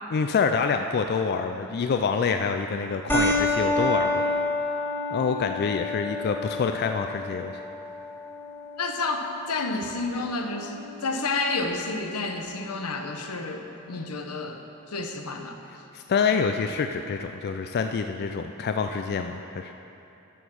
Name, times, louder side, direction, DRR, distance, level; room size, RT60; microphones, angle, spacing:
voice 1, 0.1-4.2 5.1-7.6 15.9-19.7, left 5 dB, 45° left, 6 dB, 0.4 m, -26 dB
sound 1, 3.1-12.1, left 2 dB, 10° left, 1.5 m, -30 dB
voice 2, 8.8-14.6 14.9-15.8, left 3 dB, 85° left, 5 dB, 0.9 m, -30 dB
11.0 x 7.0 x 6.2 m, 2.9 s
head